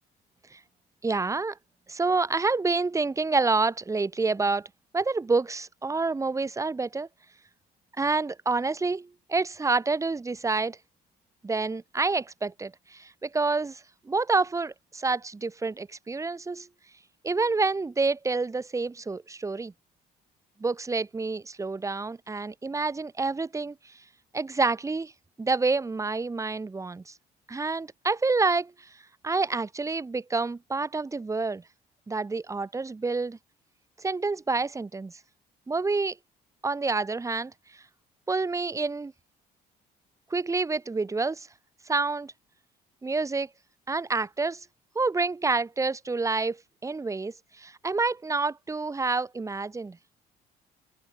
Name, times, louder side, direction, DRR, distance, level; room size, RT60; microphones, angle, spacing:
voice 1, 1.0-1.6 1.9-4.7 4.9-7.1 8.0-10.8 11.4-16.7 17.2-19.7 20.6-23.9 24.3-25.1 25.4-27.1 27.5-28.9 29.2-31.6 32.1-33.4 34.0-35.1 35.7-36.2 36.6-37.8 38.3-39.1 40.3-41.5 41.9-42.3 43.0-43.5 43.9-44.7 45.0-50.0, right 3 dB, 20° right, 1.7 m, -28 dB
open air
cardioid pair, 110°, 17 cm